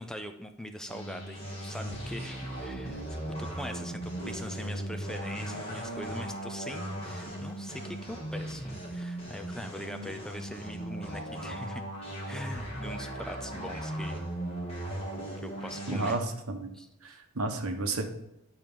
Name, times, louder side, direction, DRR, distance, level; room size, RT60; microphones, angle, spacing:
voice 1, 0.0-3.0 3.3-11.8 12.3-14.2 15.4-16.2 16.7-16.9, equal, 5° left, 7 dB, 0.4 m, -42 dB
sound 1, 0.9-16.1, right 1 dB, 30° left, 2.3 m, -38 dB
voice 2, 15.9-16.7 17.0-18.0, right 2 dB, 70° right, 5 dB, 1.0 m, -32 dB
10.0 x 4.4 x 3.8 m, 0.87 s
head